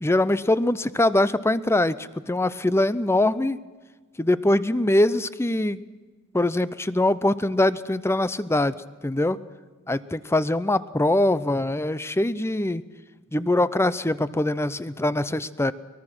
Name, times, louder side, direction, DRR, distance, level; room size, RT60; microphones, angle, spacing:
voice 1, 0.0-3.6 4.2-5.8 6.3-8.8 9.0-9.4 9.9-12.8 13.3-15.7, left 1 dB, 10° left, 16 dB, 0.6 m, -23 dB
23.5 x 20.5 x 6.1 m, 1.3 s
head